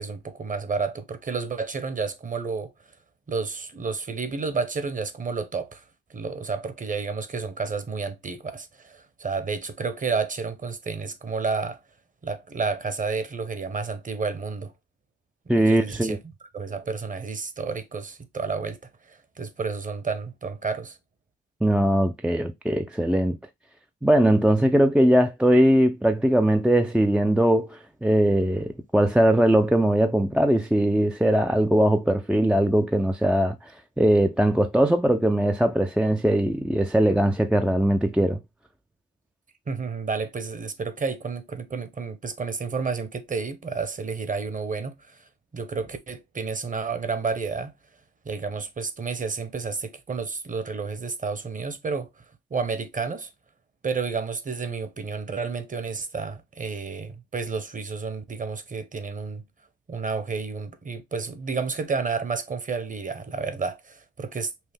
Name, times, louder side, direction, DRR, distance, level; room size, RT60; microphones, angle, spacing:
voice 1, 0.0-2.7 3.3-5.8 6.1-11.8 12.2-14.7 15.5-16.2 16.5-18.8 19.1-21.0 39.7-45.2 45.5-47.7 48.3-52.1 52.5-53.3 53.8-59.4 59.9-64.7, right 4 dB, 25° right, 0.8 m, -30 dB
voice 2, 15.5-16.2 21.6-23.4 24.0-33.6 34.0-38.4, right 1 dB, 5° right, 0.3 m, -20 dB
5.4 x 2.1 x 3.4 m
cardioid pair, 90°, 30 cm